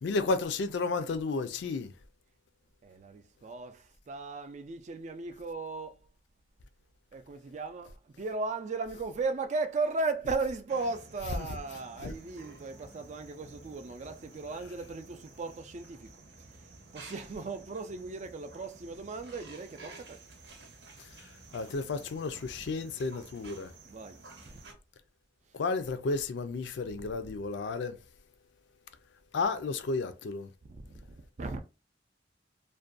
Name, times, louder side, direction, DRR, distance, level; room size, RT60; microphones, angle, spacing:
voice 1, 0.0-1.9 11.4-11.5 12.0-12.1 21.0-23.7 25.5-28.0 29.3-30.5, left 3 dB, 75° left, 0.4 m, -32 dB
voice 2, 2.8-6.0 7.1-16.1 16.9-20.2 23.9-24.2 24.5-24.6 30.7-31.1 31.4-31.6, right 3 dB, 40° right, 0.4 m, -36 dB
sound 1, 10.7-24.7, right 3 dB, 70° right, 0.8 m, -52 dB
2.5 x 2.2 x 2.4 m
head